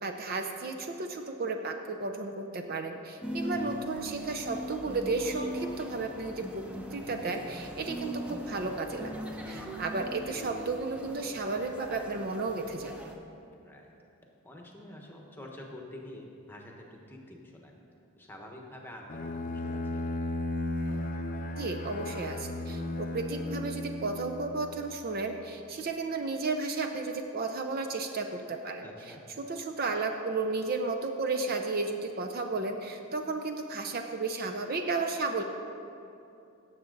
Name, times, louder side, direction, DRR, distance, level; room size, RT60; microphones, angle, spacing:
voice 1, 0.0-6.6 6.9-13.1 21.6-28.9 29.4-35.4, right 3 dB, 45° right, 5 dB, 0.5 m, -33 dB
sound 1, 3.2-13.2, equal, 5° right, 0.7 m, -40 dB
voice 2, 3.5-3.8 13.6-13.9 14.4-17.8 18.2-20.2 28.8-29.2, left 1 dB, 10° left, 0 dB, 1.1 m, -47 dB
Bowed string instrument, 19.1-24.9, left 2 dB, 40° left, 0.6 m, -35 dB
16.0 x 7.2 x 3.9 m, 2.7 s
head